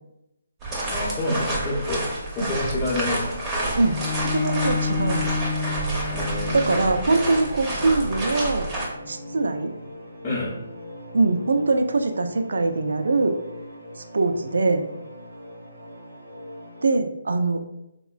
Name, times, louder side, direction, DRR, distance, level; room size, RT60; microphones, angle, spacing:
sound 1, 0.6-8.9, right 2 dB, 20° right, 0.6 m, -29 dB
voice 1, 0.9-2.1 2.3-3.4 6.1-7.1 10.2-10.5, left 2 dB, 25° left, -10 dB, 0.7 m, -28 dB
voice 2, 3.7-5.3 6.5-8.7 9.1-9.7 11.1-13.3 14.1-14.8 16.8-17.6, right 3 dB, 70° right, 6 dB, 0.3 m, -22 dB
Bowed string instrument, 3.8-9.0, left 5 dB, 75° left, 0.7 m, -30 dB
sound 2, 5.2-16.8, equal, 85° right, 0.8 m, -41 dB
3.6 x 2.1 x 2.4 m, 0.88 s
figure-of-eight pair, 145°, 0 cm